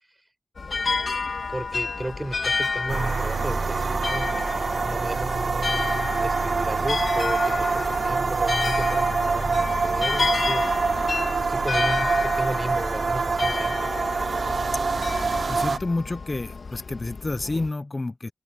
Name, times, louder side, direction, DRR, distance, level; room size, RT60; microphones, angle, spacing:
sound 1, 0.6-17.7, left 4 dB, 80° left, 2.0 m, -30 dB
voice 1, 1.5-5.7 6.2-10.7 11.4-13.9, right 1 dB, 20° right, 6.3 m, -34 dB
sound 2, 2.9-15.8, right 4 dB, 75° right, 0.5 m, -25 dB
voice 2, 15.5-18.3, left 2 dB, 45° left, 0.7 m, -29 dB
open air
cardioid pair, 50°, 0 cm